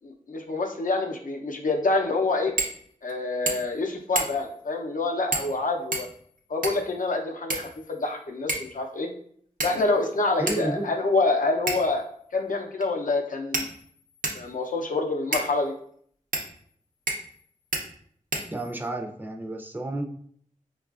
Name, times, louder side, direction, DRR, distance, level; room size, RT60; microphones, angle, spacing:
voice 1, 0.0-2.5 3.0-6.1 6.5-9.1 9.6-12.1 12.3-13.7 14.3-15.7, left 3 dB, 70° left, 1 dB, 0.5 m, -27 dB
sound 1, 2.6-2.8 3.1-3.2 3.5-3.8 4.2-4.5 5.3-5.6 5.9-6.9 7.5-8.1 8.5-8.8 9.6-10.0 10.5-10.6 11.7-12.0 12.8-12.9 13.5-14.5 15.3-15.5 16.3-16.5 17.1-17.4 17.7-17.8 18.3-18.9, right 2 dB, 80° right, 0.6 m, -30 dB
voice 2, 10.4-10.9 18.5-20.1, right 2 dB, 15° right, 1 dB, 0.4 m, -31 dB
4.5 x 2.3 x 2.3 m, 0.62 s
wide cardioid pair, 65°, 14 cm